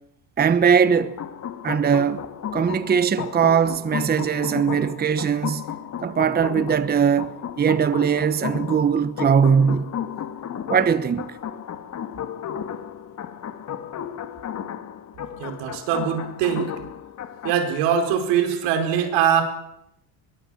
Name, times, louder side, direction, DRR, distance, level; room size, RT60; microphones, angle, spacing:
voice 1, 0.4-1.1 1.6-2.2 2.5-5.6 6.0-9.9 10.7-11.4, right 7 dB, 20° right, 1.0 m, -20 dB
sound 1, 0.8-17.6, left 9 dB, 40° left, 2.3 m, -34 dB
voice 2, 15.4-16.7 17.4-19.4, right 8 dB, 90° right, 4.8 m, -22 dB
24.0 x 22.0 x 7.8 m
cardioid pair, 135°, 43 cm